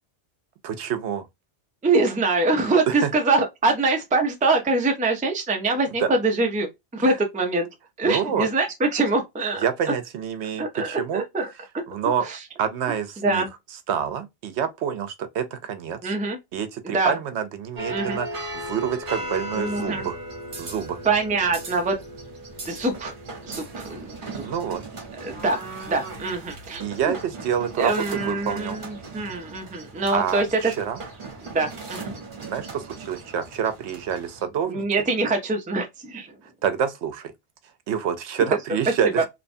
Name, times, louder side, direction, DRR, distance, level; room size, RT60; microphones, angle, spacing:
voice 1, 0.6-1.2 2.9-3.1 6.0-6.1 8.0-8.5 9.6-11.2 11.9-12.3 12.6-13.4 13.9-16.1 16.5-20.2 20.6-21.0 24.4-24.8 26.8-28.8 30.1-31.0 32.4-34.9 36.6-37.3 37.9-39.3, right 8 dB, 80° right, 0.9 m, -27 dB
voice 2, 1.8-7.7 8.0-9.6 10.6-11.5 12.3-12.4 13.2-13.5 16.0-16.4 16.8-17.2 17.9-18.2 19.5-20.0 21.0-22.0 22.6-23.1 23.4-24.0 24.3-24.4 25.2-27.1 27.8-30.4 31.4-32.1 34.7-36.3, right 3 dB, 10° right, 0.4 m, -24 dB
sound 1, 17.8-34.4, right 2 dB, 50° right, 1.1 m, -37 dB
2.8 x 2.1 x 2.5 m
omnidirectional pair, 1.1 m